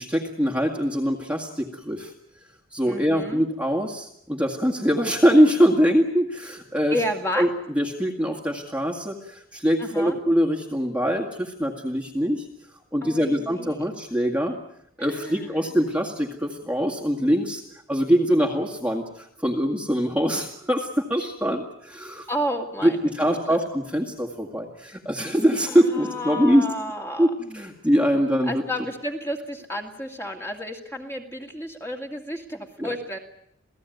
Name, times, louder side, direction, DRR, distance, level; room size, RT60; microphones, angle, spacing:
voice 1, 0.0-2.1 2.7-7.0 7.4-7.5 7.8-12.5 12.9-14.6 15.0-17.6 17.9-22.3 22.8-26.7 27.2-28.6 32.8-32.9, equal, 5° right, 1 dB, 2.0 m, -23 dB
voice 2, 2.9-3.4 6.9-7.5 9.8-10.2 13.0-13.9 15.0-15.7 22.3-23.6 25.7-27.3 28.1-33.2, equal, 10° left, 3 dB, 2.4 m, -32 dB
28.5 x 17.5 x 9.4 m, 0.75 s
head